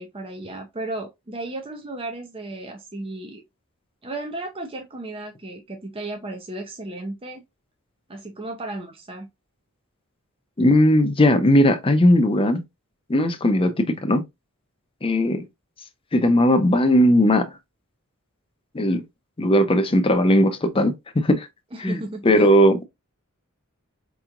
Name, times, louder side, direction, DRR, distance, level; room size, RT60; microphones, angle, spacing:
voice 1, 0.0-3.4 4.0-7.4 8.1-9.3 21.7-22.6, right 2 dB, 25° right, 0.6 m, -34 dB
voice 2, 10.6-12.6 13.1-14.2 15.0-15.4 16.1-17.5 18.7-19.0 19.4-21.5 21.8-22.8, left 1 dB, 25° left, 0.6 m, -18 dB
4.7 x 2.9 x 2.4 m
head